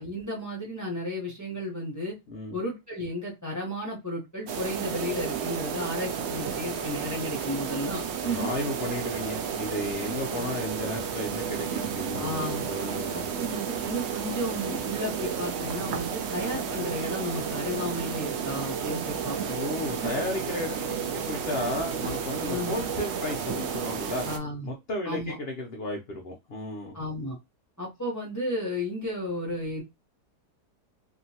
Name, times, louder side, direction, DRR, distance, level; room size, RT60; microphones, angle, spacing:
voice 1, 0.0-2.1 2.5-8.5 12.1-12.6 13.3-19.6 20.0-20.1 22.5-22.7 24.3-24.7 25.0-25.4 26.9-27.4 27.8-29.8, left 1 dB, 20° left, 0.5 m, -33 dB
sound 1, 4.5-24.4, right 7 dB, 85° right, 0.6 m, -32 dB
voice 2, 8.2-13.3 19.5-24.3 24.6-27.0, left 1 dB, 70° left, 0.5 m, -34 dB
2.9 x 2.5 x 2.7 m
omnidirectional pair, 1.8 m